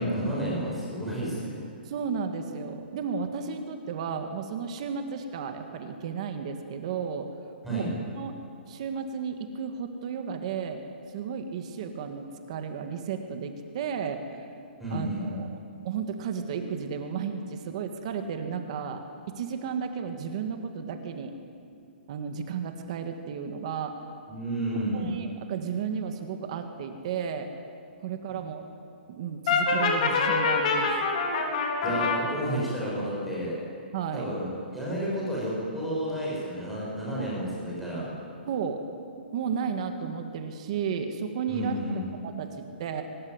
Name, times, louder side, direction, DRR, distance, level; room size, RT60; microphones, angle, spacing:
voice 1, 0.0-1.5 7.6-7.9 14.8-15.4 24.3-25.1 28.3-28.4 31.8-33.6 34.1-38.1 41.5-42.0, equal, ahead, -8 dB, 6.7 m, -31 dB
voice 2, 1.8-7.3 7.7-7.9 8.1-8.3 8.7-10.8 11.1-14.2 14.9-15.6 15.8-21.3 22.1-23.9 24.9-27.5 28.0-28.6 29.1-30.9 33.9-34.3 37.1-37.2 38.4-38.8 39.3-43.0, right 6 dB, 35° right, 6 dB, 1.7 m, -33 dB
Brass instrument, 29.5-32.2, left 4 dB, 40° left, 4.2 m, -25 dB
23.0 x 19.5 x 9.7 m, 2.5 s
hypercardioid pair, 175°, 6 cm